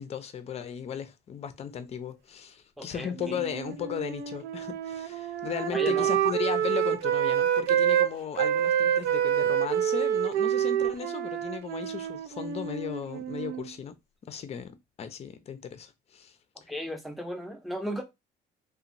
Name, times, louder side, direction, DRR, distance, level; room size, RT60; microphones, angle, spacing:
voice 1, 0.0-13.9 14.2-16.4, left 8 dB, 40° left, 0.5 m, -36 dB
voice 2, 2.8-3.4 5.7-6.1 16.7-18.0, equal, ahead, 0.6 m, -35 dB
Wind instrument woodwind instrument, 3.2-8.1 8.4-13.7, right 10 dB, 75° right, 0.4 m, -27 dB
2.9 x 2.2 x 2.5 m
cardioid pair, 110°, 17 cm